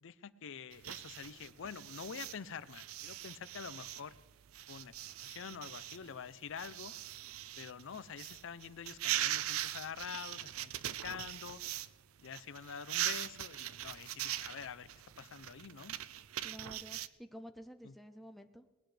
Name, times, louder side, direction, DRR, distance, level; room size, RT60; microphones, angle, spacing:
voice 1, 0.0-4.2 4.7-6.9 7.6-10.7 11.0-11.6 12.2-14.9 15.2-16.0 17.8-17.9, left 7 dB, 60° left, 16 dB, 0.5 m, -46 dB
sound 1, 0.7-11.9 12.2-17.1, right 12 dB, 70° right, 0.5 m, -41 dB
voice 2, 16.4-18.6, equal, ahead, 6 dB, 0.5 m, -51 dB
19.5 x 16.5 x 3.3 m, 1.2 s
head